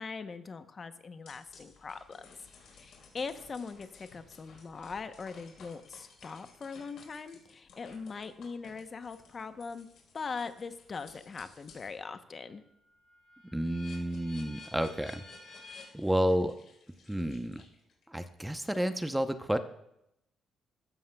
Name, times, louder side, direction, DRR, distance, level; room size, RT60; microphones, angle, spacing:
voice 1, 0.0-2.4 2.7-9.9 10.1-12.6, left 5 dB, 40° left, 10 dB, 0.8 m, -41 dB
sound 1, 1.3-12.0 12.4-18.0, left 4 dB, 75° left, 4.0 m, -55 dB
voice 2, 13.5-15.2 15.9-16.5 17.1-17.6 18.1-19.6, equal, 5° right, 9 dB, 0.7 m, -30 dB
15.0 x 13.0 x 2.3 m, 0.81 s
cardioid pair, 90°, 0 cm